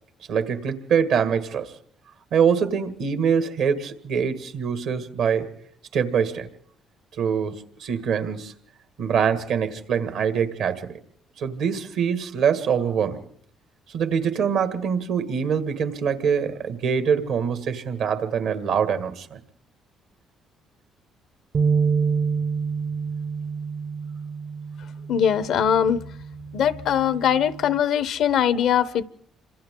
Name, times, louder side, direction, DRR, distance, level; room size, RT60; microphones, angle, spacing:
voice 1, 0.3-1.7 2.3-5.5 5.9-6.5 7.2-8.5 9.0-11.0 11.4-13.2 13.9-19.4, right 7 dB, 75° right, 2.0 m, -24 dB
sound 1, 21.5-27.8, right 5 dB, 50° right, 0.8 m, -28 dB
voice 2, 25.1-26.0 26.5-29.0, left 9 dB, 70° left, 0.8 m, -21 dB
28.0 x 25.5 x 3.8 m
supercardioid pair, 65°, 0 cm